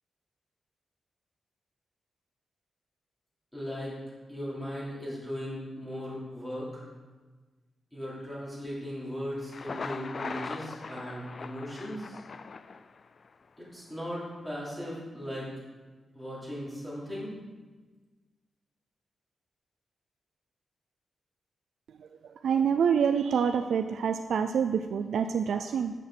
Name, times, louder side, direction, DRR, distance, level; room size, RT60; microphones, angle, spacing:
voice 1, 3.5-4.0 4.3-6.8 7.9-12.2 13.6-15.5 16.1-17.3, equal, 5° left, -8 dB, 3.0 m, -37 dB
Thunder, 9.4-13.3, left 4 dB, 45° left, 0.3 m, -40 dB
voice 2, 22.4-25.9, right 7 dB, 85° right, 8 dB, 0.3 m, -26 dB
6.7 x 6.4 x 5.5 m, 1.3 s
wide cardioid pair, 120°, 0 cm